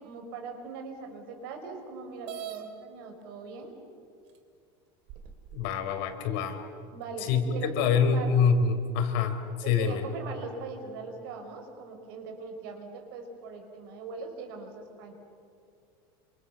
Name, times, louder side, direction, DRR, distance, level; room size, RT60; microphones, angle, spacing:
voice 1, 0.0-3.7 6.9-8.3 9.6-15.1, right 4 dB, 70° right, 4 dB, 6.2 m, -41 dB
sound 1, 2.2-2.6 3.6-3.7 4.3-4.4 5.1-5.8, right 11 dB, 50° right, 3.0 m, -40 dB
voice 2, 5.5-6.6 7.2-10.0, left 6 dB, 65° left, 6 dB, 3.9 m, -26 dB
28.0 x 26.5 x 7.1 m, 2.3 s
cardioid pair, 170°, 12 cm